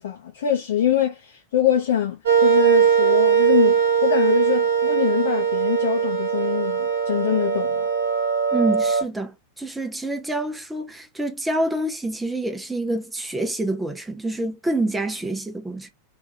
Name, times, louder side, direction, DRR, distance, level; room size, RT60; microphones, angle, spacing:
voice 1, 0.0-7.9, left 9 dB, 60° left, 0.6 m, -24 dB
sound 1, 2.3-9.0, right 7 dB, 60° right, 1.1 m, -20 dB
voice 2, 8.5-15.9, right 1 dB, 5° right, 0.6 m, -27 dB
3.3 x 2.4 x 2.7 m
figure-of-eight pair, 90°, 0 cm